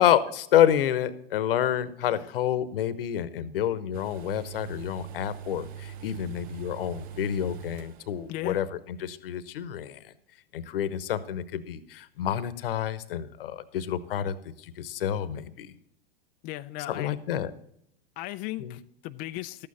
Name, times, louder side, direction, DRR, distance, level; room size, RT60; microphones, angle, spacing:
voice 1, 0.0-10.0 10.5-15.7 16.9-17.5 18.6-18.8, left 10 dB, 75° left, 1.0 m, -28 dB
sound 1, 3.9-8.4 8.6-8.7, right 9 dB, 30° right, 0.5 m, -42 dB
voice 2, 8.3-8.6 16.4-17.1 18.2-19.7, left 16 dB, 30° left, 0.4 m, -36 dB
12.5 x 8.8 x 4.1 m
hypercardioid pair, 115°, 29 cm